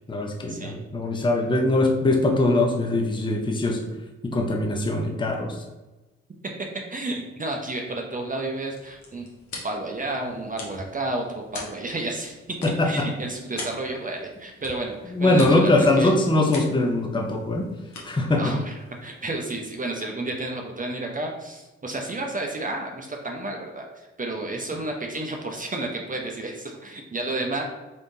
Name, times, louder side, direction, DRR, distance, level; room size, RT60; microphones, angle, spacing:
voice 1, 0.1-3.8 4.3-5.6 12.6-13.1 15.2-17.7 18.0-18.5, left 2 dB, 15° left, 2 dB, 0.7 m, -22 dB
voice 2, 6.9-9.3 9.6-16.1 18.4-27.6, right 2 dB, 25° right, 1 dB, 0.7 m, -31 dB
sound 1, 8.4-19.7, left 2 dB, 65° left, 1.3 m, -43 dB
4.2 x 3.4 x 2.7 m, 1.1 s
hypercardioid pair, 50°, 31 cm